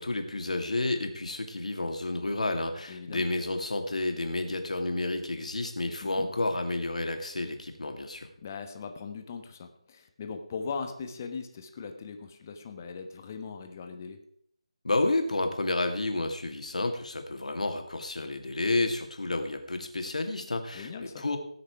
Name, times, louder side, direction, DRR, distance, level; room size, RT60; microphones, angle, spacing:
voice 1, 0.0-8.3 14.8-21.4, left 2 dB, 80° left, 5 dB, 2.2 m, -30 dB
voice 2, 2.9-3.3 6.0-6.3 8.4-14.2 20.7-21.2, left 5 dB, 25° left, 6 dB, 1.2 m, -39 dB
18.0 x 6.6 x 4.7 m, 0.68 s
figure-of-eight pair, 170°, 4 cm